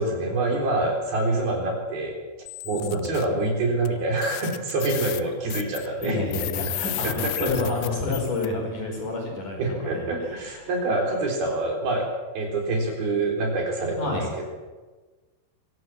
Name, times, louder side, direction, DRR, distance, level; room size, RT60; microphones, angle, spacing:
voice 1, 0.0-2.2 2.7-6.2 7.0-7.5 9.6-12.1 12.3-14.5, right 2 dB, 55° right, 1 dB, 5.6 m, -26 dB
sound 1, 2.5-3.3 3.9-4.0 4.2-8.5, left 16 dB, 85° left, 3.1 m, -33 dB
voice 2, 2.7-3.1 6.0-10.7 14.0-14.3, left 3 dB, 45° left, 1 dB, 6.3 m, -29 dB
23.5 x 17.5 x 7.5 m, 1.3 s
omnidirectional pair, 5.3 m